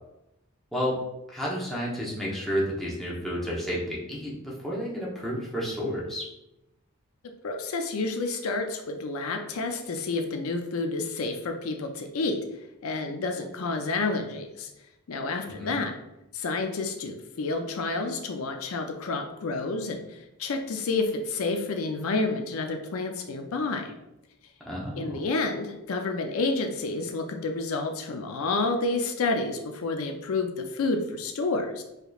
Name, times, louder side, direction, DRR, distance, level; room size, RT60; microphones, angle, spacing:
voice 1, 1.3-6.3 15.5-15.8 24.7-25.1, equal, ahead, -6 dB, 0.8 m, -31 dB
voice 2, 7.4-12.4 12.8-14.7 15.1-15.9 16.3-23.9 25.0-31.8, left 3 dB, 70° left, 4 dB, 0.5 m, -29 dB
4.8 x 3.0 x 2.3 m, 0.88 s
head